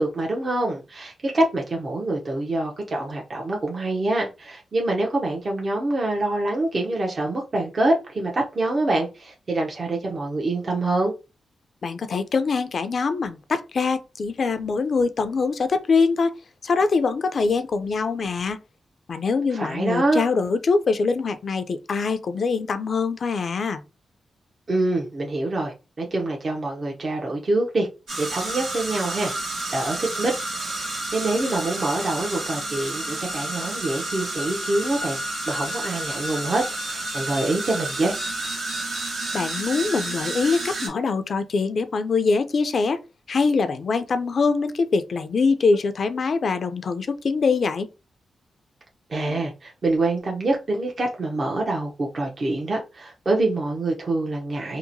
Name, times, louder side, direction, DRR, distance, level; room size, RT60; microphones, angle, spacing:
voice 1, 0.0-11.1 19.5-20.2 24.7-27.9 28.2-29.3 29.7-38.2 49.1-54.8, right 2 dB, 55° right, 0.6 m, -25 dB
voice 2, 11.8-16.3 16.6-18.6 19.1-23.8 39.3-43.0 43.3-47.9, left 4 dB, 65° left, 0.3 m, -23 dB
sound 1, 28.1-40.9, right 2 dB, 90° right, 1.2 m, -30 dB
2.8 x 2.1 x 2.6 m
supercardioid pair, 45°, 0 cm